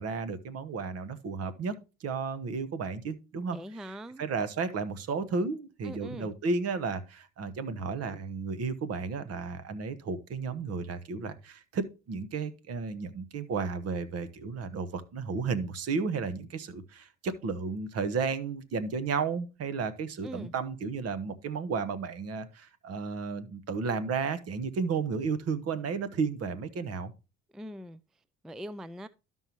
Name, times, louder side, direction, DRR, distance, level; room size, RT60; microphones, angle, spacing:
voice 1, 0.0-1.7 2.0-3.6 4.2-27.1, right 5 dB, 55° right, 1.2 m, -33 dB
voice 2, 3.5-4.2 5.8-6.3 20.2-20.5 27.5-28.0 28.4-29.1, equal, ahead, 0.3 m, -42 dB
12.5 x 5.5 x 2.9 m
cardioid pair, 100°, 29 cm